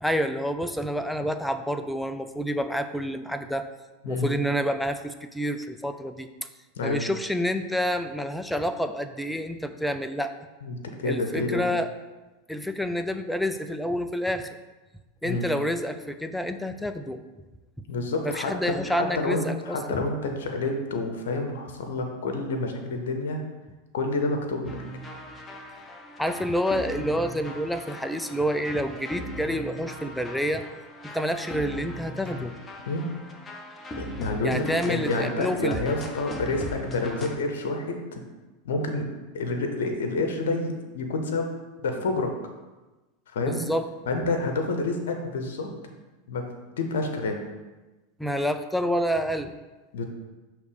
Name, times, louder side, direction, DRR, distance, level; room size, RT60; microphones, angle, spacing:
voice 1, 0.0-3.7 4.1-6.3 6.8-10.3 11.0-11.9 12.5-14.6 15.2-17.2 18.2-20.0 26.2-30.6 31.0-32.5 34.4-35.8 43.5-43.8 48.2-49.5, equal, ahead, 8 dB, 0.5 m, -28 dB
voice 2, 10.6-11.6 15.2-15.5 17.9-23.4 23.9-24.8 32.2-32.4 32.9-33.1 34.0-38.2 38.6-39.1 39.3-41.5 41.8-42.3 43.3-43.6 44.1-45.7 46.3-46.5 46.8-47.4 49.9-50.0, left 2 dB, 75° left, 4 dB, 0.8 m, -28 dB
sound 1, 24.6-37.3, left 1 dB, 20° left, 0.8 m, -39 dB
6.3 x 3.2 x 5.1 m, 1.2 s
hypercardioid pair, 95°, 0 cm